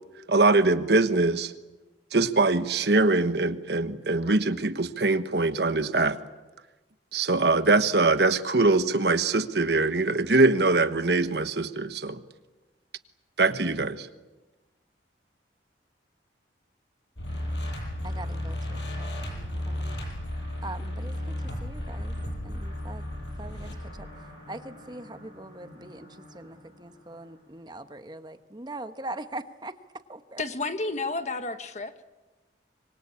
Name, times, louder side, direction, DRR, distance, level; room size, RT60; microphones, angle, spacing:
voice 1, 0.3-1.5 2.1-6.2 7.1-12.2 13.4-14.1, right 3 dB, 65° right, 11 dB, 1.2 m, -23 dB
sound 1, 17.2-27.1, left 1 dB, 75° left, 6.4 m, -35 dB
voice 2, 18.0-20.0 20.6-22.1 22.4-23.0 23.4-23.7 24.0-24.1 24.5-29.7 30.1-30.4, right 2 dB, 25° right, 10 dB, 1.0 m, -42 dB
voice 3, 30.4-31.9, left 3 dB, 40° left, 9 dB, 1.4 m, -31 dB
25.5 x 23.5 x 8.6 m, 1.1 s
head